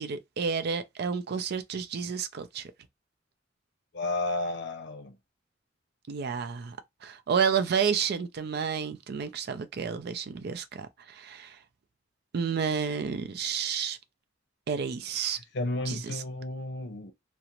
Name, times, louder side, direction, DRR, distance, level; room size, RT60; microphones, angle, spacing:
voice 1, 0.0-2.7 6.1-6.8 7.0-11.6 12.3-14.0 14.7-15.4 15.9-16.2, right 6 dB, 60° right, 0.4 m, -30 dB
voice 2, 3.9-5.2 15.5-17.1, left 2 dB, 65° left, 0.6 m, -32 dB
2.4 x 2.0 x 2.8 m
head